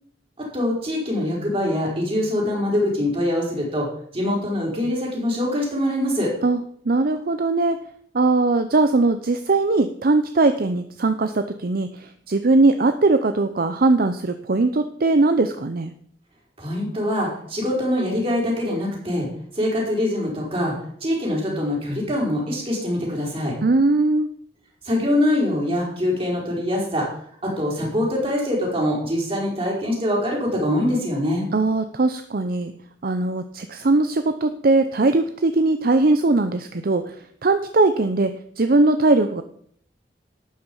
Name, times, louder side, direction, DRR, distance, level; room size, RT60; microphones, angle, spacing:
voice 1, 0.5-3.9 4.1-6.3 16.6-19.3 19.5-20.7 21.0-23.5 24.8-27.1 27.4-31.5, left 1 dB, 35° right, -2 dB, 4.7 m, -23 dB
voice 2, 6.8-7.8 8.1-15.9 23.6-24.3 31.5-32.7 33.0-37.1 37.4-39.4, right 2 dB, 55° right, 9 dB, 0.7 m, -20 dB
12.0 x 9.0 x 5.4 m, 0.64 s
head